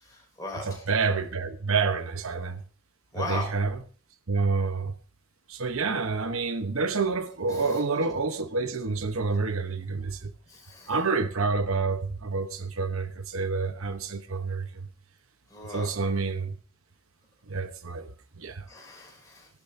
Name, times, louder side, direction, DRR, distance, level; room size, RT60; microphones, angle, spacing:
voice 1, 0.1-0.9 3.1-3.5 7.5-7.7 10.5-10.9 15.5-16.0 18.7-19.5, left 2 dB, 15° left, 5.4 m, -38 dB
voice 2, 0.6-2.6 3.2-3.8 4.3-5.0 5.5-10.3 10.9-14.9 15.6-16.6 17.5-18.7, right 4 dB, 70° right, 1.0 m, -28 dB
18.0 x 12.0 x 2.7 m
head